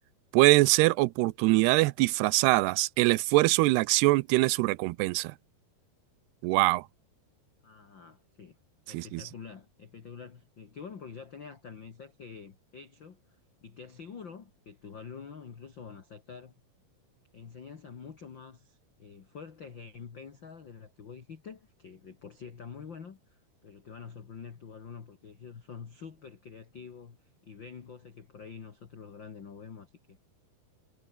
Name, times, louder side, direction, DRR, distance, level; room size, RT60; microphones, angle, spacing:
voice 1, 0.3-5.3 6.4-6.8 8.9-9.2, right 21 dB, 85° right, 2.7 m, -23 dB
voice 2, 7.6-8.6 8.9-13.2 13.6-16.5 17.3-27.2 27.4-30.2, left 6 dB, 40° left, 1.9 m, -46 dB
omnidirectional pair, 4.7 m